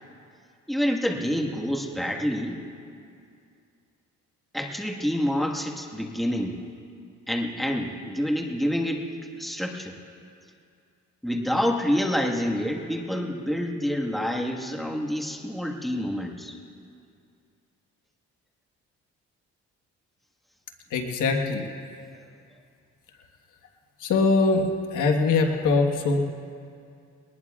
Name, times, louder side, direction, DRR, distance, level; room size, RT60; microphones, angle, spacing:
voice 1, 0.7-2.6 4.5-6.6 7.3-9.1 9.4-10.0 11.2-16.6, equal, ahead, 0 dB, 1.6 m, -27 dB
voice 2, 20.9-21.6 24.0-24.6 24.9-26.2, left 4 dB, 85° left, 3 dB, 1.4 m, -22 dB
21.5 x 19.5 x 2.4 m, 2.4 s
cardioid pair, 90°, 30 cm